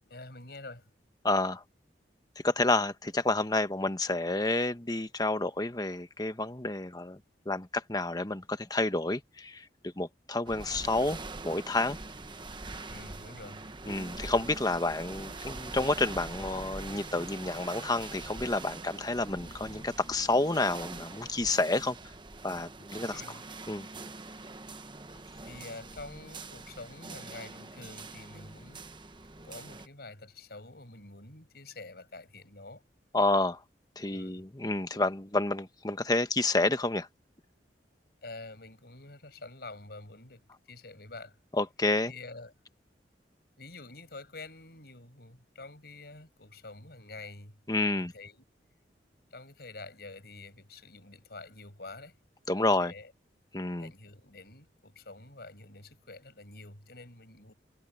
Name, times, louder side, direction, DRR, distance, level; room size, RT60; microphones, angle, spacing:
voice 1, 0.0-0.9 12.9-13.7 23.1-23.4 25.4-28.9 29.4-32.8 34.1-34.4 38.2-41.3 42.0-42.5 43.6-47.6 47.9-48.4 49.3-52.2 52.6-53.1 53.8-57.5, left 3 dB, 60° left, 6.6 m, -47 dB
voice 2, 1.2-1.6 2.4-7.2 7.4-12.0 13.9-22.0 22.4-23.2 23.7-23.9 33.1-33.6 34.0-37.1 41.6-42.1 47.7-48.1 52.5-52.9 53.5-53.9, left 2 dB, 20° left, 1.2 m, -29 dB
sound 1, 10.5-29.9, right 3 dB, 25° right, 1.1 m, -43 dB
head